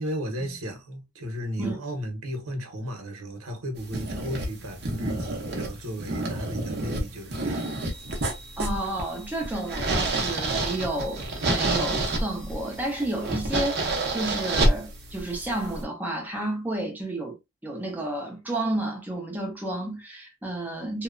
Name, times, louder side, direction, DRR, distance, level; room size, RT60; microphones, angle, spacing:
voice 1, 0.0-7.8, equal, 80° right, 0.9 m, -35 dB
sound 1, 3.8-15.8, right 2 dB, 45° right, 0.6 m, -29 dB
Chime, 7.3-15.5, right 4 dB, 15° left, 0.9 m, -49 dB
voice 2, 8.6-17.4 17.6-21.0, right 1 dB, 10° right, 0.6 m, -31 dB
2.8 x 2.1 x 2.4 m
head